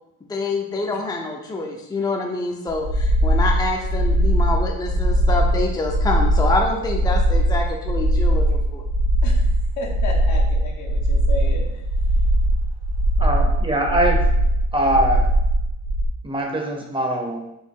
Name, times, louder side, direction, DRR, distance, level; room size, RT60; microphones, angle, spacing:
voice 1, 0.3-8.8, left 2 dB, 15° left, 1 dB, 0.5 m, -26 dB
sound 1, 2.7-16.1, right 1 dB, 70° right, 0.7 m, -20 dB
voice 2, 9.8-11.8, left 2 dB, 75° left, 1 dB, 1.0 m, -33 dB
voice 3, 13.2-14.3 14.7-15.3 16.2-17.5, right 1 dB, 15° right, 1 dB, 0.8 m, -22 dB
4.3 x 2.6 x 3.7 m, 0.84 s
cardioid pair, 90°, 30 cm